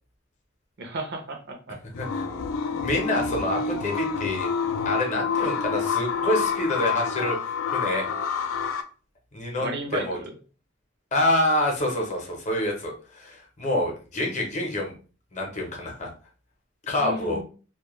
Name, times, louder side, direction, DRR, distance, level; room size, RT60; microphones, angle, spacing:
voice 1, 0.8-1.8 9.6-10.3 17.0-17.4, right 1 dB, 55° right, 3 dB, 0.5 m, -33 dB
sound 1, 1.9-8.8, left 6 dB, 75° left, 0.3 m, -28 dB
voice 2, 2.0-2.3 2.8-4.5 4.8-7.4 7.7-8.1 9.3-9.7 9.9-10.2 11.1-14.9 15.3-16.1 16.8-17.4, left 1 dB, 35° left, 1 dB, 0.7 m, -27 dB
2.2 x 2.1 x 2.9 m, 0.37 s
head